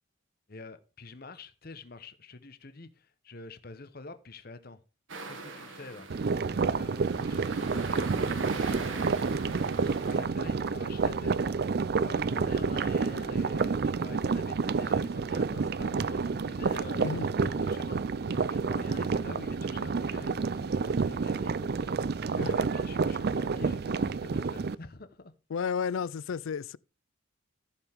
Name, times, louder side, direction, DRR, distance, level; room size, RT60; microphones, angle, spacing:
voice 1, 0.5-4.8 5.3-6.3 6.6-17.0 17.4-21.9 22.2-25.3, left 3 dB, 45° left, 1.0 m, -47 dB
sound 1, 5.1-10.2, right 3 dB, 65° right, 1.9 m, -42 dB
sound 2, 6.1-24.7, right 4 dB, 45° right, 0.4 m, -29 dB
voice 2, 25.5-26.8, left 6 dB, 70° left, 0.4 m, -32 dB
14.5 x 7.2 x 3.5 m
head